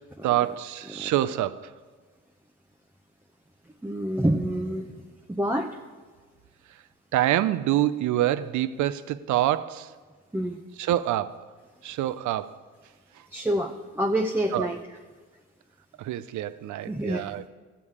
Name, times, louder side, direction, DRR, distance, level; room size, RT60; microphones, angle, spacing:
voice 1, 0.2-1.7 7.1-9.9 10.8-11.4 11.8-12.6 14.5-14.7 16.0-17.5, right 13 dB, 75° right, 15 dB, 0.5 m, -26 dB
voice 2, 3.8-4.9 5.3-5.8 10.3-10.6 13.3-14.8 16.9-17.3, right 1 dB, 5° right, 2 dB, 0.6 m, -27 dB
15.0 x 7.1 x 4.9 m, 1.4 s
cardioid pair, 90°, 30 cm